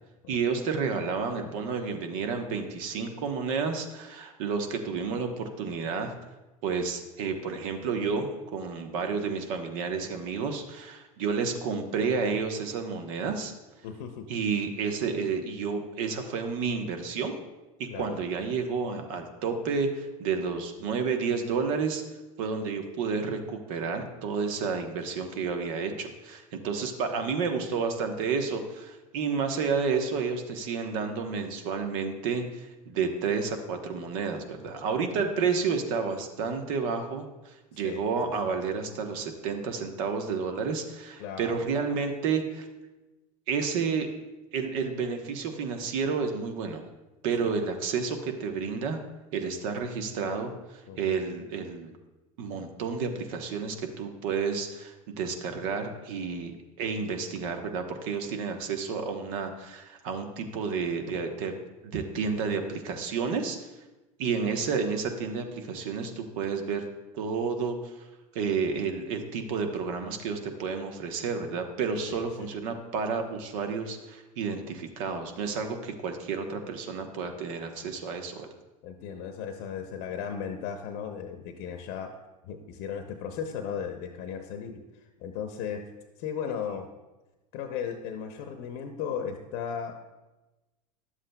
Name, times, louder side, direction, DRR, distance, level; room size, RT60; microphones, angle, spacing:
voice 1, 0.3-6.1 6.6-13.5 14.3-17.3 17.8-22.0 22.4-42.6 43.5-44.1 44.5-46.8 47.2-49.0 49.3-51.9 52.4-56.5 56.8-61.5 61.8-63.7 64.2-66.8 67.1-67.9 68.3-78.5, right 5 dB, 65° right, 5 dB, 1.1 m, -30 dB
voice 2, 13.8-14.3 17.9-18.2 37.8-38.0 38.4-38.5 41.2-41.8 47.4-47.5 50.9-51.2 72.1-72.5 78.8-82.1 82.4-85.9 86.2-86.9 87.5-90.0, left 7 dB, 55° left, 6 dB, 0.8 m, -36 dB
11.5 x 7.5 x 2.3 m, 1.1 s
hypercardioid pair, 90°, 19 cm